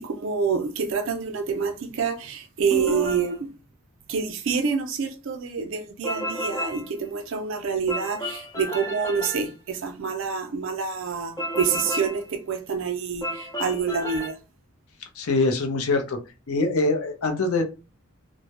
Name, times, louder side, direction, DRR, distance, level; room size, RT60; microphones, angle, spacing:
voice 1, 0.0-3.5 4.1-14.4, right 6 dB, 60° right, 0.4 m, -27 dB
sound 1, 2.7-3.4 6.0-6.9 7.9-9.5 11.4-12.2 13.2-14.3, equal, 15° left, 0.4 m, -31 dB
voice 2, 15.2-16.2 16.5-17.6, left 3 dB, 80° left, 0.6 m, -23 dB
2.1 x 2.0 x 2.8 m
head